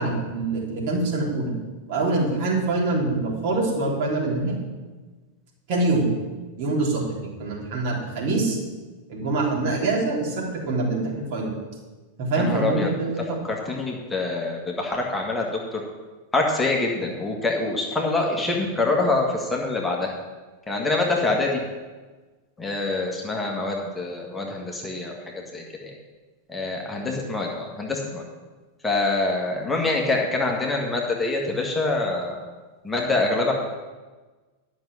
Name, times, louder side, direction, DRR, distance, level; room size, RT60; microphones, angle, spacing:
voice 1, 0.0-1.5 1.9-4.6 5.7-6.1 6.6-8.6 9.1-11.5 12.2-13.4, right 2 dB, 50° right, -2 dB, 3.4 m, -25 dB
voice 2, 12.3-12.9 13.4-15.8 16.3-20.1 20.7-21.6 22.6-25.9 26.5-28.2 28.8-32.4 32.8-33.5, left 2 dB, 10° left, -1 dB, 1.7 m, -25 dB
11.5 x 6.3 x 7.2 m, 1.3 s
figure-of-eight pair, 90°, 0 cm